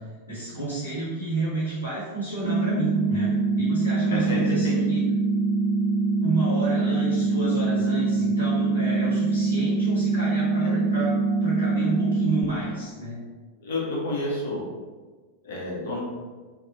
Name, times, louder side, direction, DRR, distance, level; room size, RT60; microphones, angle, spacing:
voice 1, 0.3-3.3 3.6-5.0 6.2-11.1 11.4-13.1, right 2 dB, 90° left, -10 dB, 1.4 m, -30 dB
sound 1, 2.4-12.4, right 3 dB, 65° right, 0.4 m, -24 dB
voice 2, 4.1-4.8 10.6-10.8 13.6-14.6 15.4-16.0, left 2 dB, 60° left, -4 dB, 1.0 m, -30 dB
3.9 x 2.6 x 2.8 m, 1.4 s
figure-of-eight pair, 90°, 0 cm